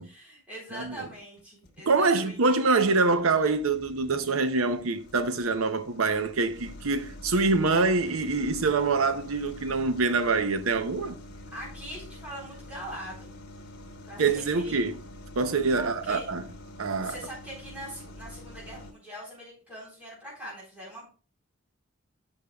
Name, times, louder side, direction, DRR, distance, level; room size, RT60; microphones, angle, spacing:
voice 1, 0.0-2.7 11.5-13.3 14.1-14.8 15.8-16.3 17.0-21.1, equal, 5° right, 3.6 m, -42 dB
sound 1, 1.1-1.8 2.3-18.9, left 1 dB, 55° left, 1.3 m, -46 dB
voice 2, 1.9-11.2 14.2-15.0 15.4-16.4 16.8-17.1, right 3 dB, 85° right, 0.7 m, -25 dB
12.0 x 5.2 x 2.3 m
head